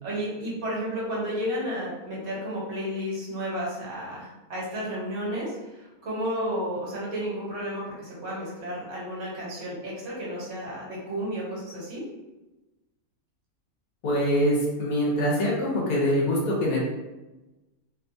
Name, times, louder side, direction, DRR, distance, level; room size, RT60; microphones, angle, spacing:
voice 1, 0.0-12.0, equal, 50° right, -5 dB, 1.2 m, -32 dB
voice 2, 14.0-16.8, equal, 80° left, -4 dB, 1.3 m, -24 dB
2.9 x 2.2 x 2.6 m, 1.1 s
omnidirectional pair, 1.5 m